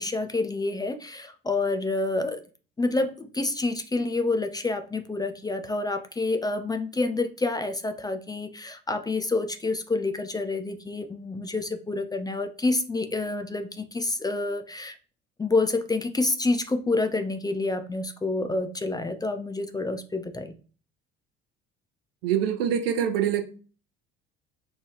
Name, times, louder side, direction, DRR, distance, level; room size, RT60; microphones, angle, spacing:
voice 1, 0.0-2.4 2.8-15.0 15.4-20.6, left 3 dB, 15° left, 8 dB, 0.4 m, -28 dB
voice 2, 22.2-23.4, right 9 dB, 75° right, 6 dB, 0.7 m, -24 dB
4.6 x 2.3 x 2.8 m, 0.38 s
hypercardioid pair, 60°, 30 cm